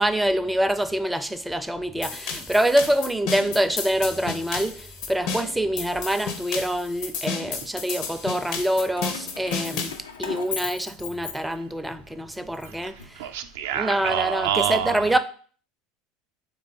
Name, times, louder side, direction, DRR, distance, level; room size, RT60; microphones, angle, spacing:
voice 1, 0.0-9.9 10.2-13.2 13.7-15.2, right 1 dB, 5° right, 0.4 m, -25 dB
sound 1, 2.0-10.0, left 5 dB, 65° left, 0.8 m, -32 dB
Keys jangling, 8.7-11.9 12.3-13.6, left 6 dB, 90° left, 0.4 m, -37 dB
voice 2, 13.2-15.0, right 10 dB, 75° right, 0.4 m, -26 dB
3.7 x 3.3 x 3.7 m
hypercardioid pair, 80°, 0 cm